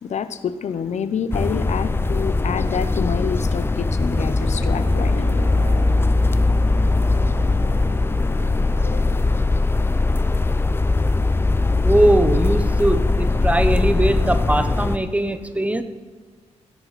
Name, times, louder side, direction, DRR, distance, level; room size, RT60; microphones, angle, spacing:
voice 1, 0.0-5.7 7.3-7.4 8.8-9.0, left 7 dB, 70° left, 12 dB, 0.8 m, -28 dB
sound 1, 1.3-15.0, left 3 dB, 20° left, 0.6 m, -20 dB
Brass instrument, 4.0-9.5, right 2 dB, 50° right, 2.2 m, -39 dB
voice 2, 11.8-15.8, right 1 dB, 10° right, 10 dB, 0.9 m, -20 dB
17.5 x 10.5 x 4.1 m, 1.5 s
cardioid pair, 95°, 12 cm